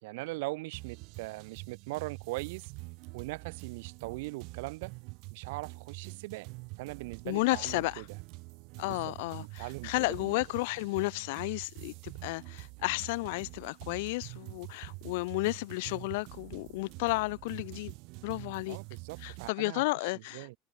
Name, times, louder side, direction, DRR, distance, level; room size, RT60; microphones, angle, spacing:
voice 1, 0.0-2.7 3.1-4.9 5.3-6.5 6.8-8.0 8.9-9.1 9.4-9.9 10.2-10.3 18.7-19.8 20.3-20.5, right 23 dB, 70° right, 1.4 m, -40 dB
sound 1, 0.7-19.5, right 29 dB, 55° right, 2.7 m, -46 dB
voice 2, 7.2-8.1 8.8-17.9 18.2-18.8 19.2-20.5, left 24 dB, 70° left, 0.7 m, -32 dB
supercardioid pair, 165°, 0 cm